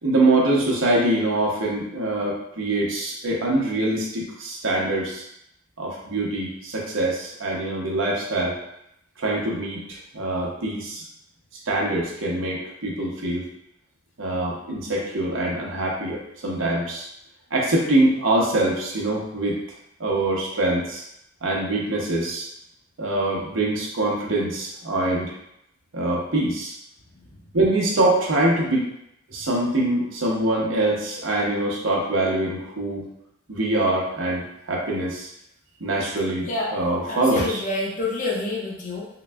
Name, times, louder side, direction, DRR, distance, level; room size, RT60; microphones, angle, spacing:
voice 1, 0.0-5.2 5.8-8.5 9.2-11.0 11.7-13.4 14.2-17.1 17.5-19.6 20.0-21.0 21.4-22.4 23.0-25.3 25.9-26.7 27.5-28.8 29.3-33.1 33.5-35.3 35.8-37.6, right 2 dB, 75° right, -3 dB, 0.9 m, -24 dB
voice 2, 36.4-36.7 37.1-39.1, left 2 dB, 40° left, -4 dB, 0.7 m, -27 dB
3.8 x 2.2 x 3.4 m, 0.78 s
head